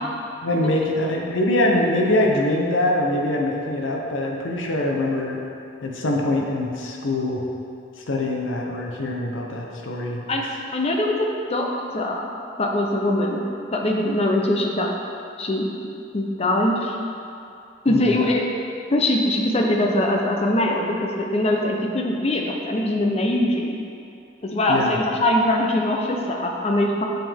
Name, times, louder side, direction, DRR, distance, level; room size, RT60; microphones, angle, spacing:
voice 1, 0.4-5.4 5.8-7.4 8.0-10.2 17.9-18.2 24.7-25.0, left 1 dB, 90° left, 0 dB, 0.9 m, -23 dB
voice 2, 10.7-12.3 12.6-13.4 13.7-14.9 15.4-15.7 16.1-17.0 17.8-18.4 18.9-23.8 24.4-27.0, left 1 dB, 35° left, 0 dB, 0.7 m, -22 dB
7.4 x 5.8 x 3.6 m, 2.6 s
head